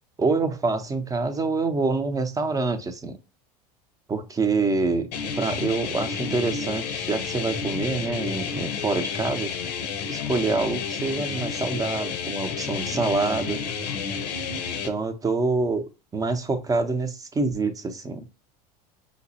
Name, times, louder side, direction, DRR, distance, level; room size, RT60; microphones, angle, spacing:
voice 1, 0.2-3.2 4.1-5.1 5.4-9.5 10.1-13.6 14.8-15.8 16.1-18.3, right 3 dB, 15° right, 0.6 m, -26 dB
sound 1, 5.1-14.9, left 6 dB, 80° left, 0.7 m, -30 dB
4.9 x 2.0 x 2.7 m
hypercardioid pair, 85°, 21 cm